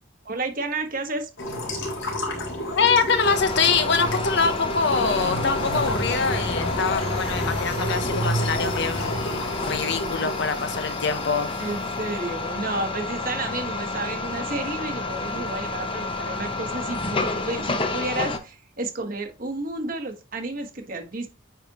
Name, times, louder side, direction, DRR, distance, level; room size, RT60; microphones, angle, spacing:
voice 1, 0.2-1.3 11.6-21.3, right 2 dB, 45° right, 5 dB, 1.3 m, -31 dB
sound 1, 1.4-11.8, left 1 dB, 90° left, 3.4 m, -29 dB
voice 2, 2.7-11.7, left 5 dB, 60° left, 9 dB, 0.9 m, -24 dB
sound 2, 3.2-18.4, left 3 dB, 25° left, 0.7 m, -30 dB
9.2 x 4.1 x 2.9 m, 0.31 s
head